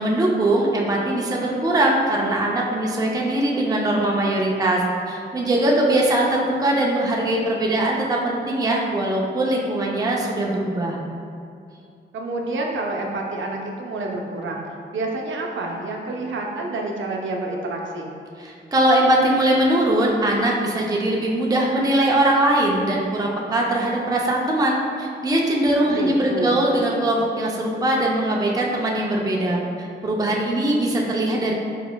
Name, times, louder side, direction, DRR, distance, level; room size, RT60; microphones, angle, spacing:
voice 1, 0.0-4.8 5.1-11.0 18.4-31.5, right 1 dB, 20° right, -2 dB, 0.4 m, -21 dB
voice 2, 12.1-18.1 25.8-26.7, right 2 dB, 80° right, 0 dB, 0.5 m, -28 dB
4.4 x 4.0 x 2.2 m, 2.5 s
wide cardioid pair, 170°, 20 cm